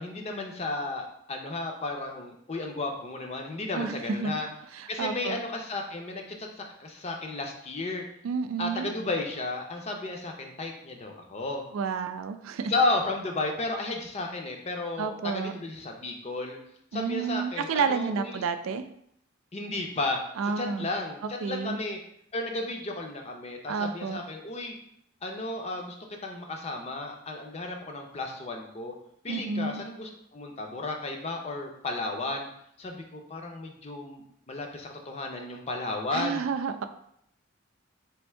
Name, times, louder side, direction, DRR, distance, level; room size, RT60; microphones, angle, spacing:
voice 1, 0.0-4.5 4.9-8.0 8.6-11.6 12.7-16.6 16.9-18.4 19.5-20.2 20.6-22.0 22.3-24.7 25.2-26.0 26.2-28.9 29.2-32.5 32.8-36.4, left 2 dB, 30° left, 2 dB, 0.5 m, -33 dB
voice 2, 3.7-4.3 4.7-5.4 8.2-8.9 11.7-12.7 15.0-15.5 16.9-18.9 20.4-20.9 21.2-21.8 23.7-24.2 29.3-29.8 36.1-36.8, right 5 dB, 85° right, 9 dB, 0.3 m, -30 dB
3.4 x 2.7 x 4.3 m, 0.72 s
head